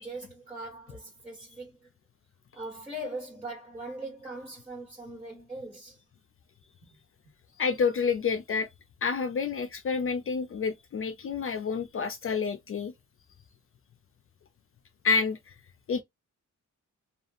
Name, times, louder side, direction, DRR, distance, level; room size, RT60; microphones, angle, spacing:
voice 1, 0.0-1.9 2.5-6.0 6.9-7.0, right 1 dB, 15° right, 1.7 m, -40 dB
voice 2, 7.6-8.7 9.0-12.9 15.0-15.4 15.9-16.0, left 5 dB, 45° left, 0.4 m, -28 dB
2.7 x 2.3 x 2.5 m
wide cardioid pair, 120°, 31 cm